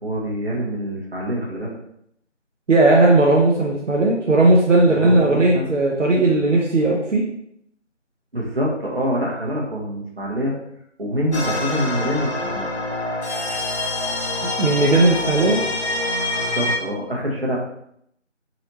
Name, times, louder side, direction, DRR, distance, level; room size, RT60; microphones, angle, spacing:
voice 1, 0.0-1.8 4.8-5.7 8.3-10.5 11.0-12.7 16.5-17.6, equal, 55° right, -3 dB, 1.3 m, -25 dB
voice 2, 2.7-7.2 14.4-15.6, right 2 dB, 75° right, -3 dB, 0.8 m, -16 dB
sound 1, 11.3-16.8, left 2 dB, 60° left, 0.9 m, -25 dB
4.1 x 2.8 x 2.9 m, 0.72 s
figure-of-eight pair, 175°, 37 cm